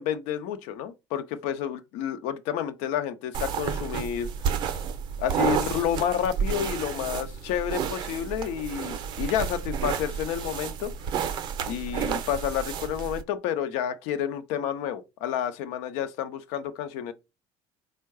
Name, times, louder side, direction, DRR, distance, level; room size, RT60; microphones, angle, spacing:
voice 1, 0.0-4.3 5.2-10.9 11.7-17.1, left 9 dB, 75° left, 0.7 m, -30 dB
sound 1, 3.3-13.2, right 7 dB, 40° right, 0.5 m, -31 dB
4.5 x 2.2 x 4.6 m
cardioid pair, 165°, 12 cm